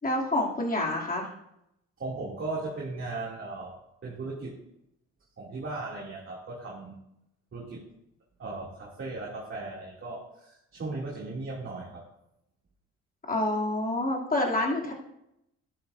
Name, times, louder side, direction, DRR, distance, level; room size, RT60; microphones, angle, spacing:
voice 1, 0.0-1.3 13.3-14.9, left 1 dB, 30° left, -2 dB, 2.9 m, -27 dB
voice 2, 2.0-3.8 4.0-4.6 5.4-7.0 7.5-7.8 8.4-12.0, right 3 dB, 40° right, -5 dB, 2.7 m, -37 dB
12.0 x 11.0 x 2.7 m, 0.82 s
cardioid pair, 90°, 30 cm